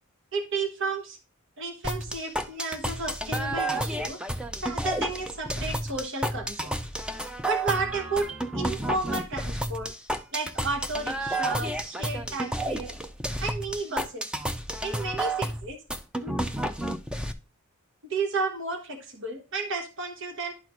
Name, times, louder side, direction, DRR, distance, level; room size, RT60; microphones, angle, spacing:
voice 1, 0.3-1.2 1.6-4.2 4.6-6.7 7.5-8.3 8.5-9.9 10.3-12.9 13.4-14.3 14.8-15.8 16.2-16.4 18.1-20.5, right 3 dB, 60° right, 4 dB, 1.2 m, -32 dB
sound 1, 1.8-17.3, right 1 dB, 5° right, 0.5 m, -31 dB
11.5 x 4.5 x 2.4 m, 0.33 s
head